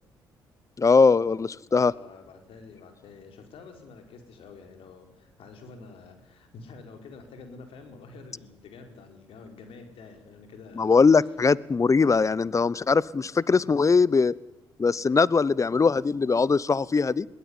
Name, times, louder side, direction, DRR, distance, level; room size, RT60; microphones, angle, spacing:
voice 1, 0.8-1.9 10.8-14.3 14.8-17.3, left 4 dB, 30° left, 22 dB, 0.8 m, -21 dB
voice 2, 1.7-10.9, left 4 dB, 70° left, 5 dB, 4.5 m, -47 dB
21.0 x 16.5 x 9.8 m, 0.96 s
supercardioid pair, 55°, 10 cm